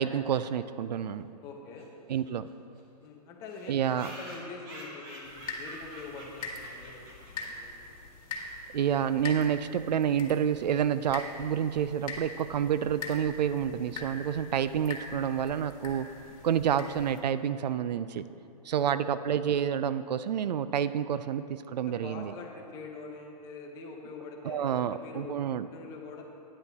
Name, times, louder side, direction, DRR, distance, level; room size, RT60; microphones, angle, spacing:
voice 1, 0.0-1.3 2.1-2.5 3.7-4.1 8.7-16.1 16.4-18.2 18.6-22.3 24.4-25.7, right 9 dB, 80° right, 14 dB, 0.4 m, -29 dB
voice 2, 1.4-1.9 3.0-7.1 7.4-7.8 18.7-19.1 21.9-26.2, left 4 dB, 15° left, 1 dB, 0.7 m, -44 dB
sound 1, 1.8-1.9 2.1-2.2 2.5-2.6 2.8-2.9 3.5-7.7, right 1 dB, 35° right, 1.7 m, -47 dB
sound 2, 5.2-17.2, left 3 dB, 60° left, 1.8 m, -43 dB
10.0 x 8.8 x 4.1 m, 2.8 s
hypercardioid pair, 165°, 21 cm